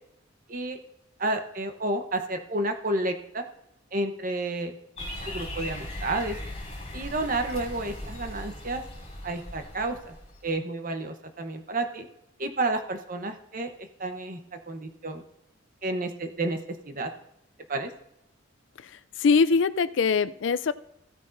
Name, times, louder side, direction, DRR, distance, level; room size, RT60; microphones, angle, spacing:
voice 1, 1.2-3.4 3.9-4.7 5.3-6.4 6.9-8.8 9.2-10.1 10.4-12.1 12.4-13.7 14.0-15.2 15.8-17.1 17.7-17.9, right 2 dB, 45° right, 6 dB, 0.9 m, -30 dB
sound 1, 5.0-10.5, left 1 dB, 35° left, 5.0 m, -38 dB
voice 2, 19.2-20.7, left 5 dB, 70° left, 15 dB, 0.4 m, -22 dB
16.0 x 9.5 x 2.6 m, 0.79 s
head